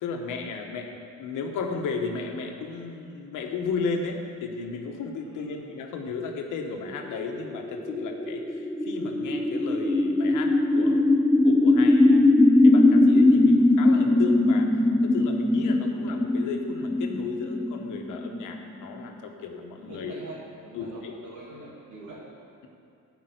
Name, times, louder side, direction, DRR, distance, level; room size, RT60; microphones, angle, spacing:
voice 1, 0.0-11.1 11.4-14.7 15.0-20.2 20.7-21.1, left 4 dB, 85° left, 3 dB, 1.3 m, -34 dB
voice 2, 5.2-5.6 15.9-16.1 19.7-22.2, right 1 dB, 80° right, -8 dB, 2.5 m, -43 dB
sound 1, 6.9-19.0, left 2 dB, 5° left, 0.5 m, -21 dB
12.5 x 5.1 x 8.1 m, 2.5 s
cardioid pair, 90°, 30 cm